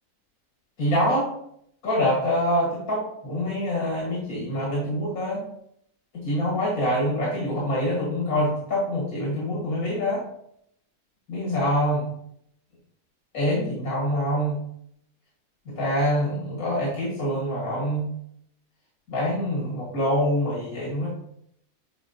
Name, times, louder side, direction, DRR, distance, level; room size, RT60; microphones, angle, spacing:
voice 1, 0.8-1.3 1.8-5.4 6.1-10.2 11.3-12.1 13.3-14.6 15.7-18.1 19.1-21.1, equal, 90° left, -5 dB, 2.3 m, -25 dB
8.5 x 4.4 x 2.8 m, 0.73 s
omnidirectional pair, 1.5 m